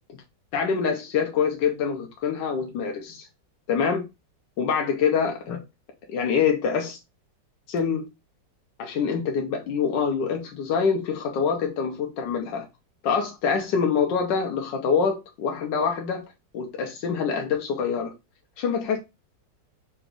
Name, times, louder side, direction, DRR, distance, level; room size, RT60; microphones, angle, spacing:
voice 1, 0.5-3.3 3.7-4.0 4.6-5.6 6.1-7.0 7.7-8.1 8.8-12.7 13.0-16.2 16.5-18.1 18.6-19.0, left 6 dB, 80° left, 1.5 m, -25 dB
4.0 x 2.5 x 4.6 m
omnidirectional pair, 1.9 m